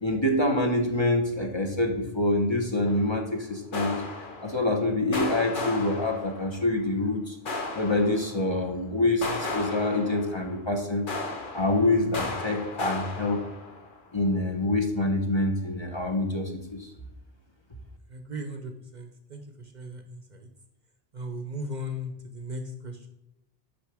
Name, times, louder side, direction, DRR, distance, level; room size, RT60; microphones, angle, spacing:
voice 1, 0.0-4.0 4.4-7.4 7.7-13.4 14.1-16.9, left 2 dB, 30° left, 1 dB, 0.8 m, -26 dB
sound 1, 2.9-3.3 3.7-4.8 5.1-6.7 7.5-8.6 9.2-10.7 11.1-14.0, left 3 dB, 55° left, 1.1 m, -35 dB
voice 2, 18.1-19.4 19.7-20.2 21.1-23.1, equal, 50° right, 6 dB, 0.7 m, -37 dB
6.6 x 5.7 x 4.8 m, 0.90 s
omnidirectional pair, 1.1 m